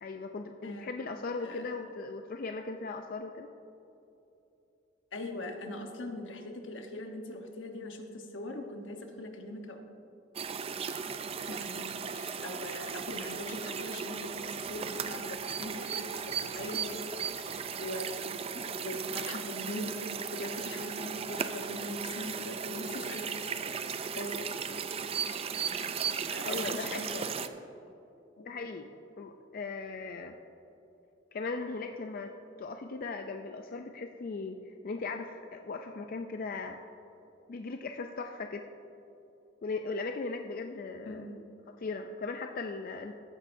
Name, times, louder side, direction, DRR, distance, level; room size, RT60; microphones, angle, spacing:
voice 1, 0.0-3.5 26.4-27.0 28.5-30.4 31.3-32.3 32.6-36.8 37.5-38.6 39.6-41.3 41.8-43.1, left 3 dB, 50° left, 5 dB, 0.4 m, -38 dB
voice 2, 1.4-1.7 5.1-9.8 11.5-16.9 17.2-23.8 24.1-24.3 26.3-27.3 28.4-28.7 41.0-41.4, left 1 dB, 80° left, 4 dB, 1.1 m, -41 dB
sound 1, 10.4-27.5, right 6 dB, 30° right, 0.4 m, -36 dB
15.0 x 9.8 x 2.6 m, 3.0 s
head